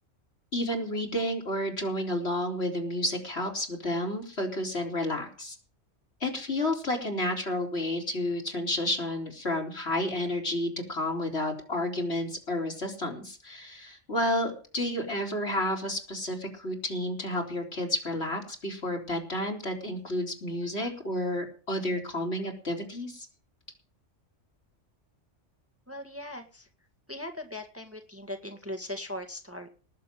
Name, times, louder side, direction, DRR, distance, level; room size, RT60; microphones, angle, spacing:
voice 1, 0.5-5.6 6.2-23.3, left 1 dB, 60° left, 1 dB, 4.2 m, -31 dB
voice 2, 25.9-26.7 27.1-29.7, left 1 dB, 10° right, 4 dB, 1.8 m, -39 dB
19.0 x 7.5 x 7.6 m, 0.38 s
omnidirectional pair, 1.2 m